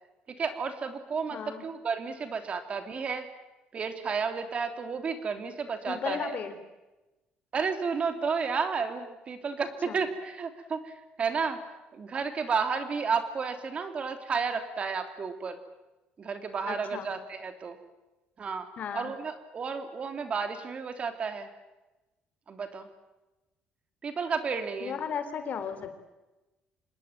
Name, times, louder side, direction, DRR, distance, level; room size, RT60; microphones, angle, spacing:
voice 1, 0.4-3.3 3.7-6.4 7.5-11.6 11.9-15.6 16.2-17.8 18.4-18.7 18.9-21.5 22.5-22.9 24.0-25.0, right 5 dB, 35° right, 8 dB, 3.0 m, -32 dB
voice 2, 1.3-1.6 5.9-6.6 9.9-10.0 16.7-17.1 18.8-19.1 24.8-26.1, left 7 dB, 50° left, 9 dB, 3.7 m, -35 dB
26.5 x 20.5 x 9.1 m, 1.1 s
cardioid pair, 125°, 3 cm